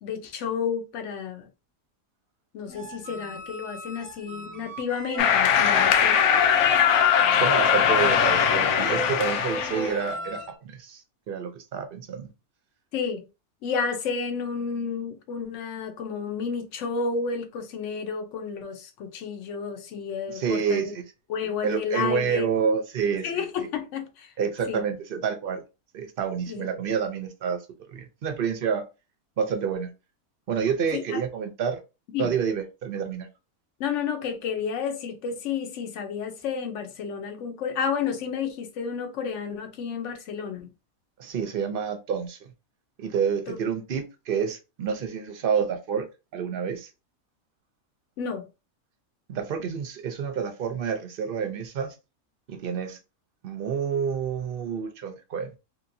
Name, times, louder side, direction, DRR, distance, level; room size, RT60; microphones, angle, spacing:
voice 1, 0.0-1.5 2.5-6.2 8.3-8.4 12.9-13.2 13.6-20.9 21.3-22.5 23.2-24.3 24.7-24.8 26.5-26.9 30.9-31.2 32.1-32.4 33.8-40.7 43.5-43.6 48.2-48.5, left 6 dB, 60° left, 1.0 m, -31 dB
sound 1, 2.7-10.5, right 2 dB, 10° right, 0.8 m, -36 dB
sound 2, 5.2-10.0, left 8 dB, 85° left, 1.1 m, -21 dB
voice 2, 7.3-12.3 20.3-21.0 21.6-23.7 24.4-25.6 25.9-27.6 27.9-28.8 29.4-29.9 30.5-31.8 32.2-33.3 41.2-42.4 43.0-46.1 46.3-46.9 49.3-51.9 52.5-53.0 53.4-55.5, right 7 dB, 60° right, 0.6 m, -28 dB
3.0 x 2.8 x 2.6 m
omnidirectional pair, 1.5 m